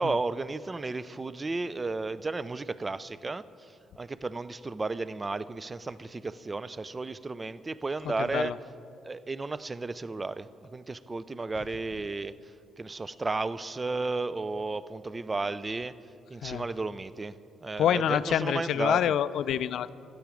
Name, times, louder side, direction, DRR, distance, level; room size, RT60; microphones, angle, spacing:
voice 1, 0.0-3.4 4.0-8.6 9.0-12.4 12.8-15.9 16.3-17.3 17.6-19.0, right 3 dB, 25° right, 16 dB, 0.3 m, -33 dB
voice 2, 8.2-8.6 16.4-16.6 17.8-19.9, left 10 dB, 75° left, 16 dB, 0.3 m, -27 dB
12.5 x 9.1 x 5.0 m, 2.6 s
cardioid pair, 90°, 0 cm